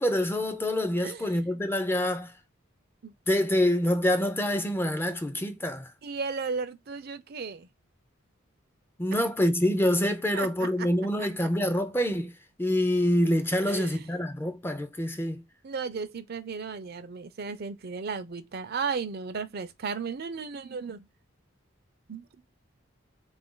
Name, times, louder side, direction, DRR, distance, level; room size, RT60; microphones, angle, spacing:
voice 1, 0.0-2.3 3.3-5.9 9.0-12.3 12.6-15.4, left 1 dB, 10° left, 0.5 m, -26 dB
voice 2, 6.0-7.7 10.3-10.9 13.7-14.1 15.6-21.0 22.1-22.3, right 5 dB, 50° right, 0.5 m, -35 dB
3.7 x 2.5 x 3.7 m
head